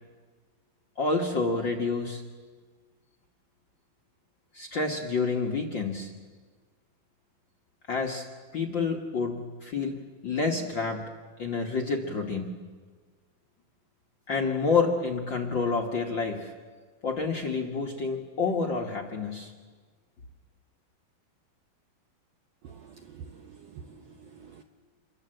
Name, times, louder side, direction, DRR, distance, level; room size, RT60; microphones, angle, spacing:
voice 1, 1.0-2.2 4.5-6.1 7.9-8.3 8.5-10.0 10.2-11.1 11.4-12.5 14.3-16.5 17.0-19.5, left 4 dB, 45° left, 1 dB, 1.6 m, -28 dB
voice 2, 22.6-24.6, right 6 dB, 65° right, 4 dB, 1.7 m, -47 dB
27.5 x 22.5 x 7.8 m, 1.5 s
omnidirectional pair, 4.1 m